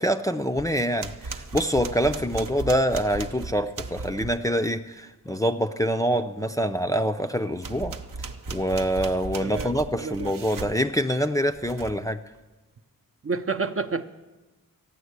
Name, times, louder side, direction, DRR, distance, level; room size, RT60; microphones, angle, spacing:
voice 1, 0.0-12.2, equal, 10° left, 6 dB, 0.5 m, -25 dB
sound 1, 0.6-4.5 7.6-10.8 11.5-12.1, right 3 dB, 65° right, 0.9 m, -37 dB
voice 2, 9.4-10.3 13.2-14.1, right 4 dB, 40° right, 8 dB, 0.6 m, -30 dB
14.0 x 9.2 x 8.0 m, 1.1 s
wide cardioid pair, 85°, 35 cm